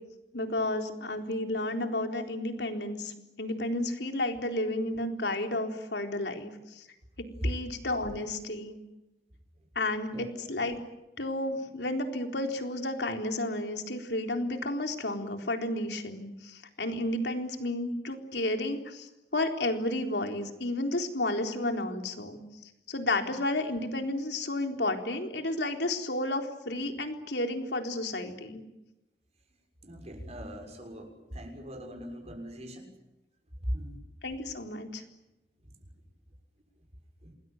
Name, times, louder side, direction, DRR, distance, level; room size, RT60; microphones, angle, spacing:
voice 1, 0.3-6.9 7.4-8.8 9.8-10.8 11.2-28.6 34.2-35.0, left 1 dB, 70° left, 5 dB, 4.0 m, -32 dB
voice 2, 29.8-32.9 33.7-34.0 37.2-37.3, equal, 40° right, 4 dB, 6.6 m, -41 dB
28.0 x 20.5 x 9.2 m, 0.95 s
head